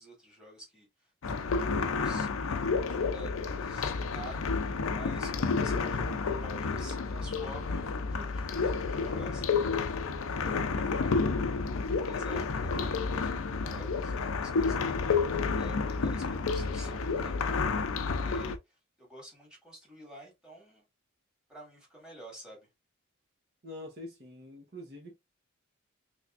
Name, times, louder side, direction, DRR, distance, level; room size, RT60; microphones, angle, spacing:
voice 1, 0.0-1.5 1.8-11.4 11.7-15.2 15.5-20.8 21.5-22.6, right 1 dB, 5° right, 2.1 m, -51 dB
sound 1, 1.2-18.6, left 4 dB, 70° left, 0.5 m, -30 dB
voice 2, 23.6-25.1, left 1 dB, 50° right, 1.0 m, -45 dB
3.4 x 3.3 x 2.5 m
head